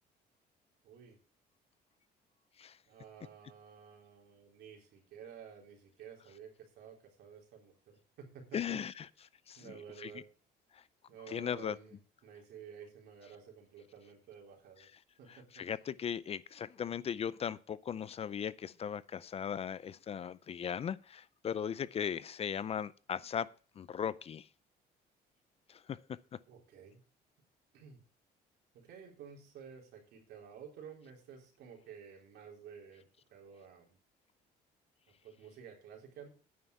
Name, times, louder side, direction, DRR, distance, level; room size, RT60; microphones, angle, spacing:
voice 1, 0.8-1.2 2.9-8.8 9.6-10.3 11.1-14.9 15.2-15.6 26.5-27.0 27.7-28.0 28.7-33.0 33.3-34.0 35.2-36.3, right 7 dB, 75° right, 3.8 m, -52 dB
voice 2, 8.5-9.1 9.5-10.1 11.3-11.8 15.5-23.5 23.8-24.5 25.7-26.0, left 8 dB, 35° left, 0.5 m, -38 dB
9.6 x 5.8 x 8.1 m
cardioid pair, 110°, 17 cm